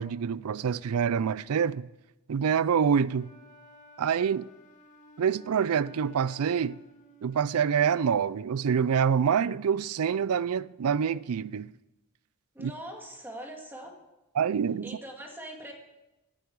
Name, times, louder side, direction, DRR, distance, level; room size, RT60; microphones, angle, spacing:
voice 1, 0.0-1.9 2.3-3.3 4.0-4.5 5.2-6.8 7.2-11.7 12.6-12.7 14.4-14.9, right 7 dB, 85° right, 0.4 m, -26 dB
Wind instrument woodwind instrument, 3.1-8.3, equal, 35° left, 2.2 m, -53 dB
voice 2, 12.5-13.9 14.8-15.7, right 1 dB, 10° right, 2.0 m, -42 dB
16.5 x 10.5 x 4.7 m
head